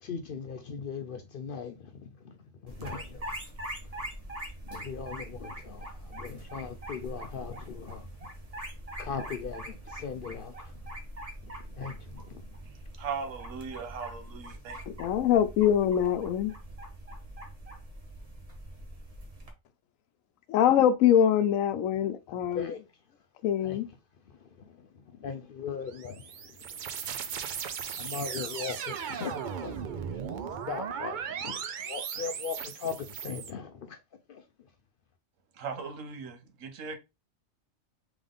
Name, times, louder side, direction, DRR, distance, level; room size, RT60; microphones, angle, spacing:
voice 1, 0.0-3.3 4.6-8.1 9.0-10.8 11.4-12.5 22.5-22.8 23.6-23.8 24.3-27.2 27.9-29.9 30.1-34.0 34.3-34.7, left 6 dB, 65° left, 0.5 m, -40 dB
sound 1, 2.7-19.5, right 1 dB, 30° right, 0.9 m, -43 dB
voice 2, 13.0-14.8 35.6-37.0, right 5 dB, 80° right, 1.2 m, -38 dB
voice 3, 15.0-16.5 20.5-22.7 23.4-23.9, left 9 dB, 90° left, 1.0 m, -24 dB
sound 2, 25.9-33.5, right 7 dB, 65° right, 0.5 m, -37 dB
3.5 x 3.4 x 3.6 m
omnidirectional pair, 1.3 m